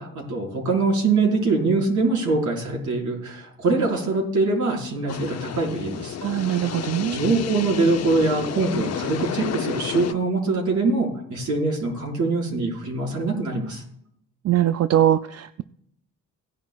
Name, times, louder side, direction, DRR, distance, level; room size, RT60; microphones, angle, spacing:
voice 1, 0.0-6.6 7.1-13.8, right 3 dB, 70° right, -1 dB, 4.9 m, -23 dB
sound 1, 5.1-10.1, left 9 dB, 55° left, 0.7 m, -31 dB
voice 2, 6.2-7.2 14.4-15.6, right 12 dB, 55° right, 11 dB, 0.5 m, -21 dB
18.0 x 10.5 x 2.4 m, 0.73 s
cardioid pair, 95°, 31 cm